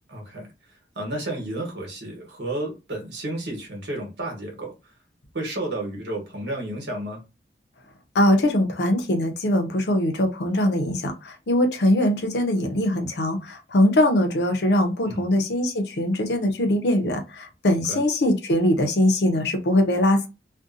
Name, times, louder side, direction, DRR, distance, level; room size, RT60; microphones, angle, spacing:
voice 1, 0.1-0.5 0.9-4.7 5.3-7.2 15.0-15.3 17.9-18.0, right 1 dB, 85° right, 0 dB, 1.2 m, -31 dB
voice 2, 8.1-20.3, left 1 dB, 75° left, 5 dB, 0.6 m, -22 dB
2.6 x 2.2 x 2.5 m, 0.27 s
head